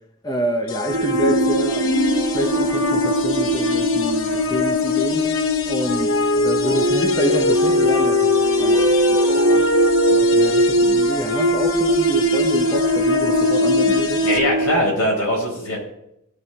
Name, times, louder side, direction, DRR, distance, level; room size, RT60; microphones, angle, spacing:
voice 1, 0.2-1.9 2.2-5.3 5.7-8.8 9.5-9.8 10.1-14.2, equal, 15° left, 0.9 m, -27 dB
sound 1, 0.7-14.4, left 4 dB, 60° left, 0.9 m, -23 dB
sound 2, 0.9-14.8, right 1 dB, 80° right, 1.8 m, -21 dB
voice 2, 14.2-15.8, left 1 dB, 90° left, 4.5 m, -21 dB
16.0 x 5.8 x 4.1 m
head